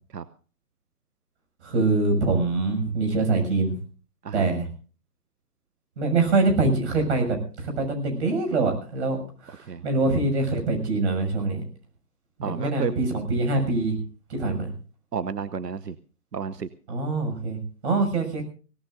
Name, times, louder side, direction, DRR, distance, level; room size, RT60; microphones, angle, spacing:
voice 1, 1.6-3.8 4.3-4.7 6.0-9.2 9.4-11.6 12.4-14.0 14.3-14.7 16.9-18.4, right 3 dB, 45° right, 4 dB, 6.8 m, -24 dB
voice 2, 12.4-12.9 15.1-15.9 16.3-16.7, right 7 dB, 85° right, 13 dB, 1.0 m, -31 dB
24.0 x 17.5 x 2.6 m, 0.38 s
hypercardioid pair, 145°, 47 cm